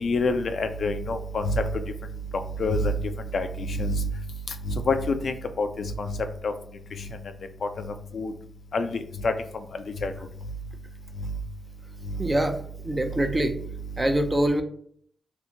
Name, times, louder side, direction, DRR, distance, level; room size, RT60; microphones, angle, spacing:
voice 1, 0.0-1.6 2.6-2.9 3.3-4.1 4.7-5.7 6.0-6.1 6.4-6.5 8.1-8.3 8.7-8.9 9.2-9.3 10.0-10.1, left 2 dB, 70° left, 8 dB, 0.3 m, -26 dB
voice 2, 12.2-12.6 12.8-13.6 14.0-14.6, right 1 dB, 25° right, 7 dB, 0.4 m, -24 dB
2.6 x 2.4 x 2.7 m, 0.62 s
supercardioid pair, 45°, 0 cm